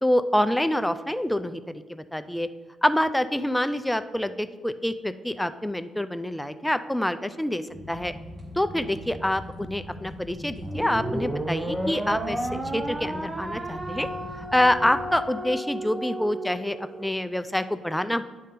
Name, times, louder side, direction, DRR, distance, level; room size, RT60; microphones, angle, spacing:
voice 1, 0.0-2.5 2.8-8.1 8.6-14.1 14.5-18.2, left 1 dB, 5° left, 11 dB, 0.4 m, -26 dB
sound 1, 7.7-15.2, equal, 40° right, 1.9 m, -41 dB
sound 2, 10.6-17.1, right 1 dB, 20° right, 0.7 m, -32 dB
10.5 x 4.2 x 3.8 m, 1.4 s
cardioid pair, 90°, 0 cm